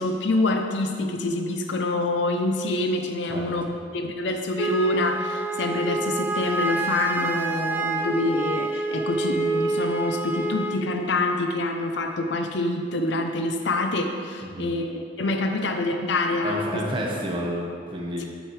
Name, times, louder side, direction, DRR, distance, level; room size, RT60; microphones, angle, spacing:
voice 1, 0.0-3.7 3.9-16.8 18.2-18.3, left 2 dB, 65° left, 4 dB, 0.5 m, -26 dB
voice 2, 3.3-3.7 14.4-14.7 16.4-18.2, equal, 25° right, -2 dB, 1.1 m, -30 dB
Wind instrument woodwind instrument, 4.6-10.8, right 3 dB, 10° right, 0.3 m, -28 dB
9.1 x 8.1 x 3.2 m, 2.3 s
head